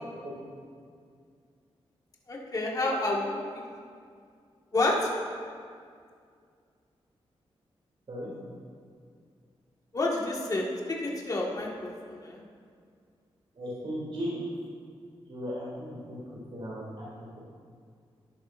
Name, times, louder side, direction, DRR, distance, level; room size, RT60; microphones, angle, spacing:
voice 1, 2.3-3.3 4.7-5.1 9.9-12.4, left 2 dB, 35° left, -3 dB, 1.9 m, -29 dB
voice 2, 2.8-3.3 8.1-8.3 13.5-14.4 15.3-16.2 16.5-17.0, equal, 55° right, -8 dB, 3.0 m, -37 dB
13.5 x 10.5 x 2.6 m, 2.2 s
cardioid pair, 80°, 11 cm